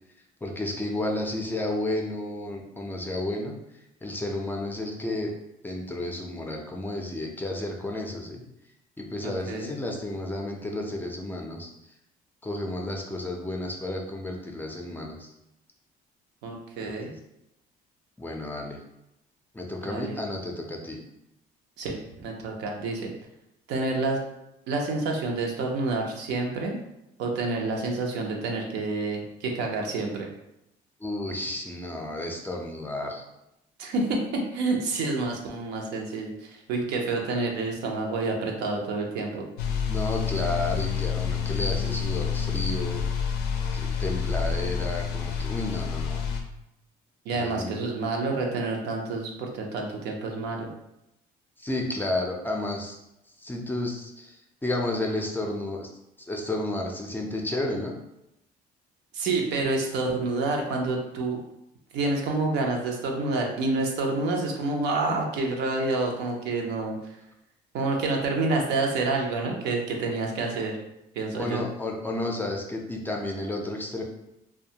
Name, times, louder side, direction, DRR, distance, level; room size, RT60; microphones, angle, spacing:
voice 1, 0.4-3.5 4.0-5.3 5.6-8.4 9.0-11.7 12.4-15.3 16.8-16.9 18.2-18.8 19.5-21.0 31.0-33.2 39.9-43.0 43.7-46.2 47.3-47.8 51.6-53.0 53.4-54.4 54.6-55.9 56.3-57.9 71.3-74.0, left 1 dB, 10° left, 0 dB, 0.4 m, -32 dB
voice 2, 9.2-9.7 16.4-17.1 19.8-20.1 21.8-23.1 23.7-24.2 24.7-26.8 27.2-30.3 33.8-39.4 47.3-50.7 59.1-61.4 61.9-67.0 67.7-70.8 71.2-71.6, right 3 dB, 85° right, 1 dB, 0.6 m, -28 dB
sound 1, 39.6-46.4, left 6 dB, 80° left, 0.4 m, -28 dB
2.4 x 2.2 x 2.7 m, 0.86 s
cardioid pair, 110°, 17 cm